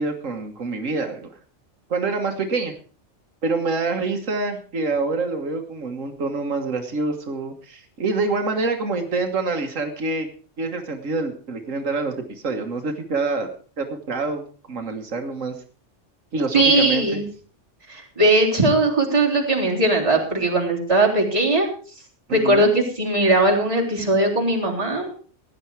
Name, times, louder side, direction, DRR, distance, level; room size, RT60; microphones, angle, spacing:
voice 1, 0.0-1.3 1.9-2.7 3.4-10.3 10.6-13.5 13.8-14.4 14.7-15.5 16.3-17.2 22.3-22.7, right 3 dB, 85° right, 5 dB, 1.8 m, -26 dB
voice 2, 16.5-17.2 17.9-21.7 22.3-25.1, right 2 dB, 25° right, -3 dB, 3.7 m, -19 dB
16.0 x 10.5 x 4.7 m, 0.40 s
omnidirectional pair, 1.3 m